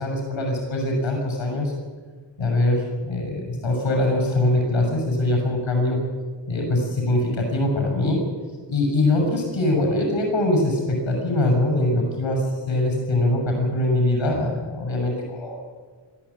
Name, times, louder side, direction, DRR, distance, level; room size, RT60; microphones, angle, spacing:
voice 1, 0.0-1.7 2.4-6.0 6.5-8.2 8.7-15.6, left 1 dB, 85° left, 1 dB, 7.3 m, -22 dB
26.0 x 13.0 x 8.7 m, 1.5 s
wide cardioid pair, 115°, 45 cm